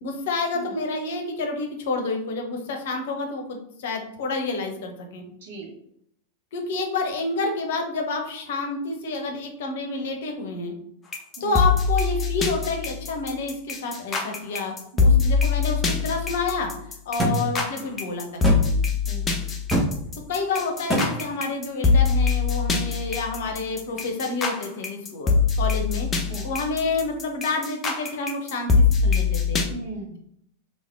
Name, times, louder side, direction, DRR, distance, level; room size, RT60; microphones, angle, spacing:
voice 1, 0.0-5.2 6.5-10.7 11.4-14.7 15.0-16.7 17.1-18.7 20.2-26.1 26.4-29.6, left 3 dB, 55° left, 3 dB, 0.8 m, -29 dB
voice 2, 5.4-5.7 11.4-11.6 14.9-15.3 17.7-17.8 19.0-19.4 26.3-26.5 29.7-30.2, right 1 dB, 55° right, -1 dB, 1.0 m, -37 dB
sound 1, 11.1-29.6, left 4 dB, 20° left, 0.7 m, -23 dB
sound 2, 17.2-17.4 18.4-18.6 19.7-19.9 20.9-21.1, right 1 dB, ahead, 1.0 m, -21 dB
3.6 x 2.5 x 3.4 m, 0.71 s
figure-of-eight pair, 90°, 0 cm